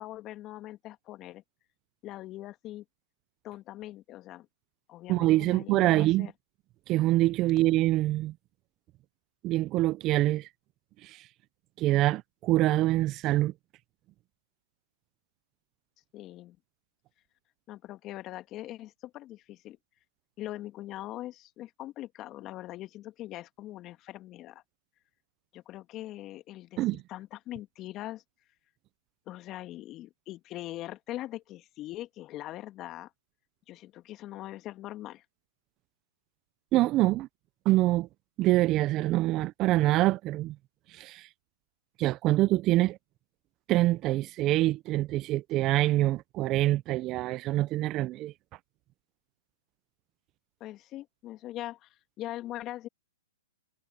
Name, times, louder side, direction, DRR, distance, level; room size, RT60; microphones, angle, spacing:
voice 1, 0.0-1.4 2.0-2.8 3.4-4.5 4.9-6.3 16.1-16.6 17.7-19.8 20.4-24.6 25.5-28.2 29.3-33.1 33.7-35.2 50.6-52.9, left 15 dB, 30° left, 2.1 m, -42 dB
voice 2, 5.1-6.3 6.9-8.3 9.4-10.5 11.0-11.2 11.8-13.5 26.8-27.0 36.7-37.3 37.6-38.1 38.4-40.5 40.9-41.3 42.0-43.0 43.7-48.3, right 16 dB, 30° right, 0.8 m, -25 dB
hypercardioid pair, 125°, 0 cm